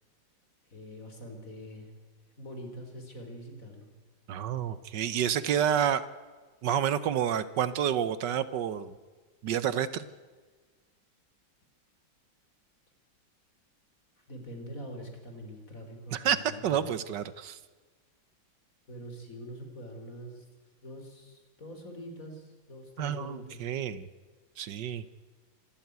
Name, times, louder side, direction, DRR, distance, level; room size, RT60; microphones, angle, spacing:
voice 1, 0.7-1.9 2.4-3.9 14.3-16.9 18.9-20.5 20.8-23.7, equal, 45° left, 4 dB, 4.1 m, -44 dB
voice 2, 4.3-6.1 6.6-8.9 9.4-10.1 16.1-16.4 16.6-17.6 23.0-24.1 24.6-25.0, right 9 dB, 70° right, 15 dB, 1.5 m, -29 dB
26.0 x 13.0 x 9.4 m, 1.4 s
omnidirectional pair, 2.0 m